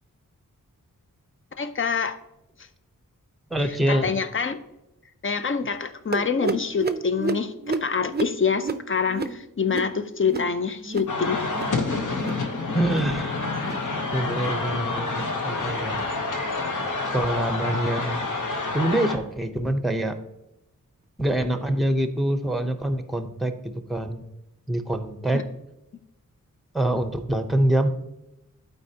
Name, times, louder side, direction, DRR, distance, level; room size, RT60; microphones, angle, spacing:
voice 1, 1.6-2.2 3.6-4.6 5.2-11.4 11.9-12.0 25.3-25.4, left 5 dB, 35° left, 10 dB, 0.6 m, -26 dB
voice 2, 3.5-4.1 12.7-13.3 14.1-16.0 17.1-18.3 18.7-20.1 21.2-24.2 24.7-25.4 26.7-27.9, right 1 dB, ahead, 7 dB, 0.8 m, -25 dB
sound 1, 6.1-11.2 11.4-11.8 12.1-12.5 12.8-13.2 13.5-13.9 14.3-14.6 15.1-15.4 15.9-16.1 16.7-16.9 17.5-17.7 18.4-18.5 19.3-19.4, right 4 dB, 30° right, 0.5 m, -32 dB
sound 2, 11.1-19.2, left 3 dB, 65° left, 1.0 m, -28 dB
12.0 x 4.5 x 2.9 m, 0.90 s
wide cardioid pair, 75°, 34 cm